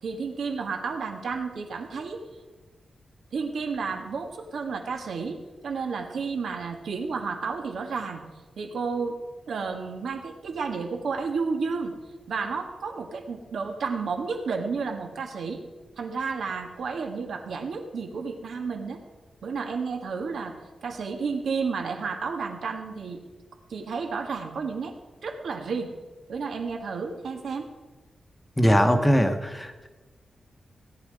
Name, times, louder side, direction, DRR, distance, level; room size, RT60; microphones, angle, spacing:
voice 1, 0.0-2.2 3.3-8.2 8.6-9.2 9.5-11.9 12.3-15.6 16.0-19.0 19.4-20.6 20.8-23.2 23.7-25.0 25.2-25.9 26.3-27.7, right 5 dB, 80° right, 4 dB, 1.9 m, -31 dB
voice 2, 28.6-29.9, equal, 10° left, 6 dB, 1.1 m, -21 dB
17.5 x 9.9 x 4.9 m, 1.2 s
wide cardioid pair, 160°, 0 cm